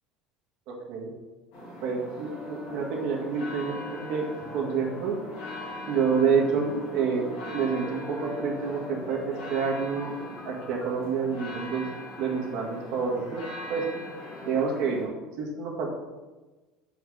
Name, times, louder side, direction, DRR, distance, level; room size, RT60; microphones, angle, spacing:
voice 1, 0.7-1.1 1.8-5.1 5.9-10.2 10.5-11.9 12.2-13.9 14.5-15.9, right 5 dB, 50° right, -2 dB, 1.7 m, -28 dB
sound 1, 1.5-15.1, left 1 dB, 55° left, 2.3 m, -41 dB
sound 2, 2.3-11.0, left 4 dB, 25° left, 0.5 m, -43 dB
5.9 x 4.6 x 6.4 m, 1.2 s
cardioid pair, 180°, 0 cm